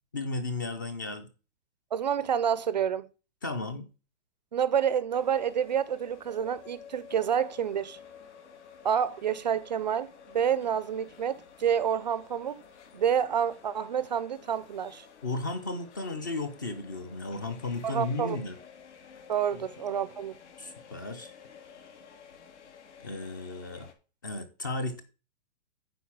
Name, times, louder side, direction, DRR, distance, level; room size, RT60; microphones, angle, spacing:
voice 1, 0.1-1.3 3.4-3.9 15.2-18.6 19.5-19.6 20.6-21.3 23.0-23.9 24.2-25.0, left 2 dB, 20° left, 0.4 m, -34 dB
voice 2, 1.9-3.0 4.5-8.0 8.8-12.6 12.9-15.1 17.8-18.4 19.3-20.3, right 8 dB, 40° right, 0.4 m, -28 dB
sound 1, 5.1-23.9, left 7 dB, 80° left, 2.5 m, -52 dB
9.4 x 4.2 x 7.2 m
hypercardioid pair, 175°, 35 cm